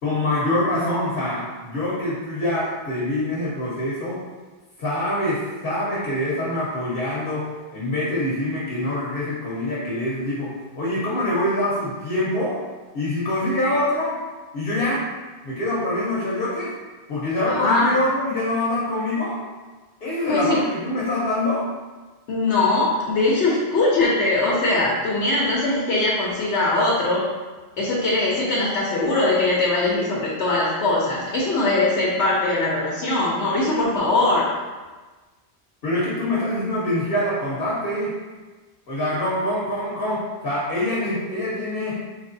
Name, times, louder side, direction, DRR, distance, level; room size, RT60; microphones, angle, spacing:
voice 1, 0.0-4.2 4.8-12.6 12.9-14.2 14.5-15.1 15.4-16.7 17.1-19.4 20.0-21.6 35.8-38.1 38.9-42.0, left 1 dB, 60° left, -7 dB, 1.1 m, -25 dB
voice 2, 17.5-17.9 20.3-20.6 22.3-27.2 27.8-34.5, left 2 dB, 90° left, -6 dB, 1.0 m, -21 dB
4.1 x 3.2 x 2.6 m, 1.3 s
omnidirectional pair, 1.1 m